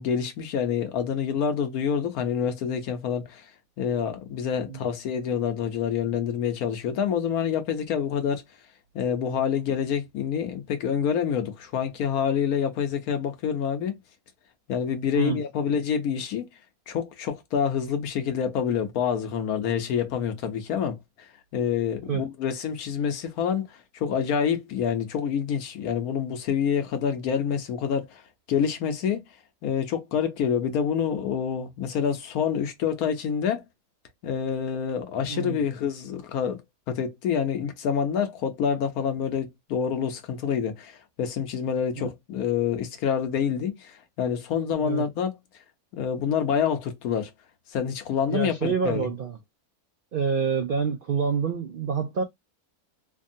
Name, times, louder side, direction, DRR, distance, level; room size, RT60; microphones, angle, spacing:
voice 1, 0.0-3.4 3.8-8.4 8.9-14.0 14.7-16.5 16.9-21.0 21.5-28.2 28.5-29.2 29.6-33.6 34.2-36.6 36.9-45.4 45.9-47.3 47.7-49.1, left 7 dB, 80° left, 1.2 m, -27 dB
voice 2, 35.3-35.6 42.0-42.1 44.8-45.0 48.3-49.4 50.1-52.2, right 6 dB, 85° right, 0.4 m, -27 dB
3.3 x 2.2 x 2.6 m
omnidirectional pair, 1.5 m